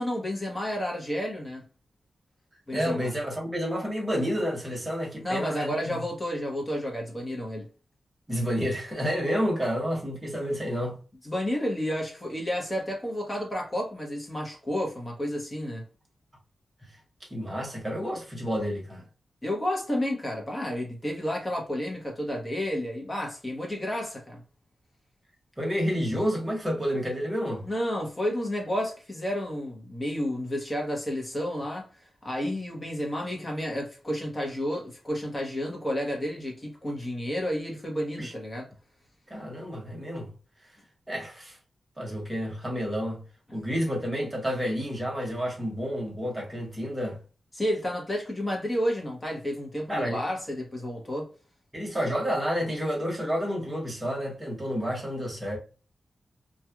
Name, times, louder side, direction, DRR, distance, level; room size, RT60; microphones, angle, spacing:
voice 1, 0.0-1.7 2.7-3.1 5.2-7.7 11.2-15.9 19.4-24.4 27.6-31.9 32.2-38.7 47.5-51.3, equal, 20° left, 1.0 m, -31 dB
voice 2, 2.7-6.1 8.3-11.0 17.3-19.0 25.6-27.6 38.2-38.3 39.3-40.3 41.1-41.6 42.0-43.2 43.5-47.2 49.9-50.2 51.7-55.6, equal, 10° right, 1.1 m, -30 dB
3.0 x 2.4 x 2.3 m
wide cardioid pair, 165°, 0 cm